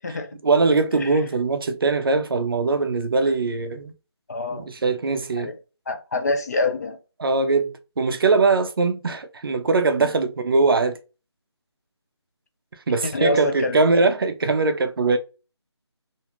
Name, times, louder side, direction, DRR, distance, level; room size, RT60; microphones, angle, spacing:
voice 1, 0.4-3.9 4.5-5.5 7.2-11.0 12.9-15.2, right 3 dB, 50° right, 0.5 m, -21 dB
voice 2, 4.3-4.7 5.4-5.6 5.9-7.0 13.1-13.8, left 2 dB, 35° left, 0.4 m, -25 dB
2.5 x 2.4 x 2.9 m
figure-of-eight pair, 160°, 15 cm